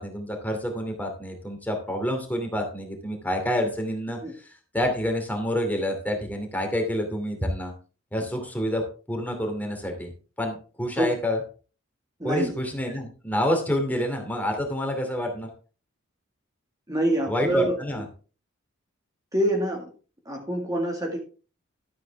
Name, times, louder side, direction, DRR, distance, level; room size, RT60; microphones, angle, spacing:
voice 1, 0.0-4.5 4.7-7.7 8.1-8.8 9.1-10.1 10.4-11.4 12.2-15.5 17.3-18.0, equal, 10° left, 3 dB, 2.7 m, -28 dB
voice 2, 12.2-12.5 16.9-17.8 19.3-19.8 20.3-21.2, right 1 dB, 20° right, 1 dB, 1.9 m, -25 dB
12.5 x 9.0 x 3.5 m, 0.36 s
head